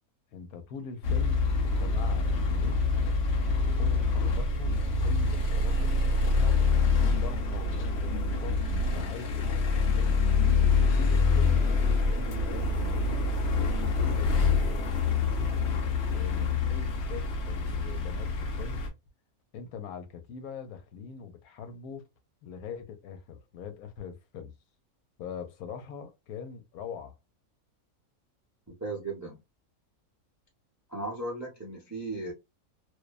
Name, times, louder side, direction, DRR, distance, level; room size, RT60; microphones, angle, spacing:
voice 1, 0.3-2.8 3.8-6.6 7.0-10.3 10.9-13.3 13.6-15.6 16.1-18.8 19.5-22.1 22.4-24.5 25.2-27.2, left 6 dB, 80° left, 1.1 m, -43 dB
sound 1, 1.0-18.9, left 4 dB, 55° left, 0.8 m, -26 dB
voice 2, 28.7-29.4 30.9-32.3, right 2 dB, 25° right, 0.4 m, -36 dB
2.6 x 2.2 x 2.2 m
omnidirectional pair, 1.6 m